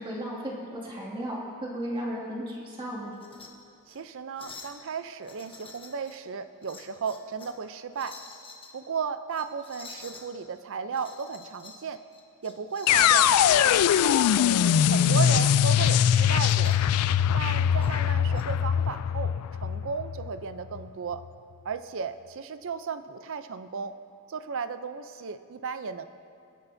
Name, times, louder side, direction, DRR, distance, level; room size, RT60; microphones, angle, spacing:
voice 1, 0.0-3.1 15.1-15.2, equal, 25° right, -4 dB, 2.3 m, -35 dB
sound 1, 3.1-3.5 3.8-4.0 4.4-4.8 5.2-6.2 6.6-7.6 7.9-8.7 9.3-10.3 10.9-11.8 12.1-16.9 17.8-18.4, left 4 dB, 25° left, 1.2 m, -48 dB
voice 2, 3.9-8.2 8.7-12.0 12.4-14.2 14.9-16.8 17.3-19.3 19.6-21.2 21.6-24.0 24.3-26.1, right 5 dB, 60° right, 12 dB, 0.5 m, -35 dB
sound 2, 12.9-20.8, left 9 dB, 80° left, 0.3 m, -22 dB
24.0 x 9.9 x 2.7 m, 2.4 s
head